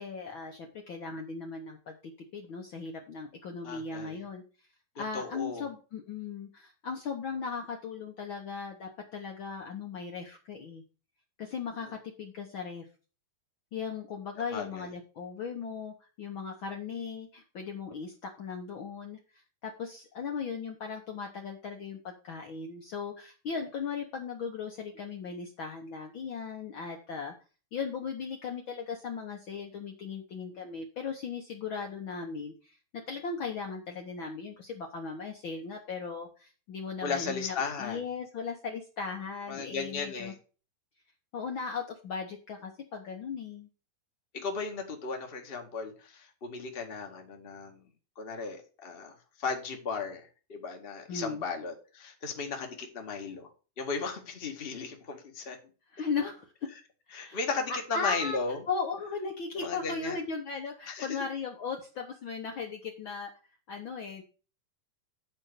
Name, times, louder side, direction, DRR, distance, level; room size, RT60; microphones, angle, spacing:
voice 1, 0.0-4.4 4.9-10.8 11.4-12.9 13.7-27.3 27.7-40.3 41.3-43.7 51.1-51.5 55.9-56.7 57.1-57.4 57.7-58.4 58.7-63.3 63.7-64.2, left 5 dB, 85° left, 2 dB, 1.1 m, -37 dB
voice 2, 3.6-4.2 5.0-5.7 14.5-14.9 37.0-38.0 39.5-40.3 44.3-47.8 48.1-53.5 53.8-55.6 57.1-58.6 59.6-60.2 60.9-61.2, left 5 dB, 35° left, 3 dB, 0.9 m, -36 dB
10.0 x 4.4 x 6.7 m, 0.35 s
omnidirectional pair, 4.0 m